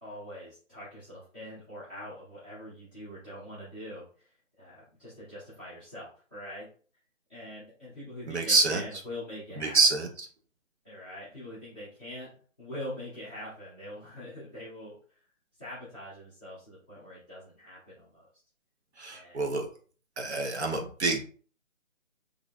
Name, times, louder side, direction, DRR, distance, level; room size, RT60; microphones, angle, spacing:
voice 1, 0.0-4.3 4.6-6.7 7.3-9.8 10.8-12.3 12.6-15.0 15.6-18.2 19.1-19.5, left 1 dB, 10° right, -13 dB, 0.8 m, -43 dB
voice 2, 8.3-8.8 9.6-10.3 19.0-19.7 20.2-21.2, right 3 dB, 55° right, 2 dB, 0.8 m, -26 dB
3.8 x 3.2 x 2.3 m, 0.43 s
hypercardioid pair, 165°, 40 cm